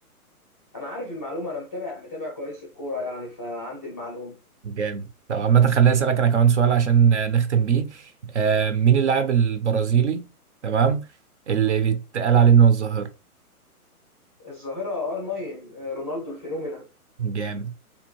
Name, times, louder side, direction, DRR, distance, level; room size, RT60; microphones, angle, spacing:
voice 1, 0.7-4.3 14.4-16.9, left 2 dB, 10° left, 0.5 m, -33 dB
voice 2, 4.6-8.0 8.3-10.3 10.6-11.0 11.5-13.1 17.2-17.7, right 7 dB, 50° right, 0.5 m, -20 dB
3.4 x 2.7 x 3.0 m
hypercardioid pair, 160°, 45 cm